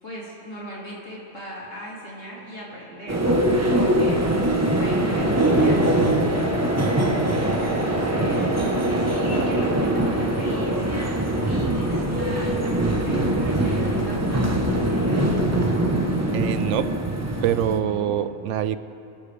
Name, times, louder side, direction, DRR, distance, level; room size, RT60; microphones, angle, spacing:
voice 1, 0.0-5.9 7.6-15.5 17.7-18.2, right 1 dB, 80° left, -6 dB, 3.7 m, -38 dB
sound 1, 3.1-17.8, right 1 dB, 15° right, 1.0 m, -22 dB
voice 2, 16.3-17.0 17.4-18.8, right 10 dB, 75° right, 13 dB, 0.9 m, -25 dB
26.0 x 12.5 x 3.4 m, 2.7 s
omnidirectional pair, 1.3 m